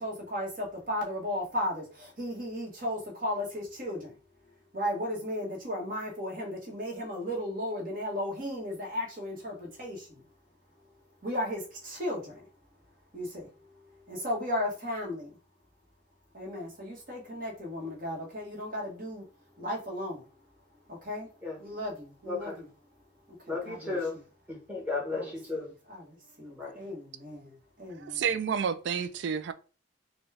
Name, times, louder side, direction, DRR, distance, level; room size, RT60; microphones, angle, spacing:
voice 1, 0.0-4.1 4.7-10.2 11.2-12.5 13.1-13.5 14.1-15.3 16.3-19.2 19.6-20.3 20.9-21.3 21.6-22.5 23.5-24.0 25.1-25.2 25.9-28.2, left 1 dB, 45° right, 1.3 m, -35 dB
voice 2, 22.3-22.6 23.4-24.2 24.5-25.7 26.6-26.8, left 3 dB, 10° right, 1.2 m, -34 dB
voice 3, 27.9-29.5, right 6 dB, 65° right, 0.3 m, -30 dB
4.1 x 2.3 x 3.3 m
head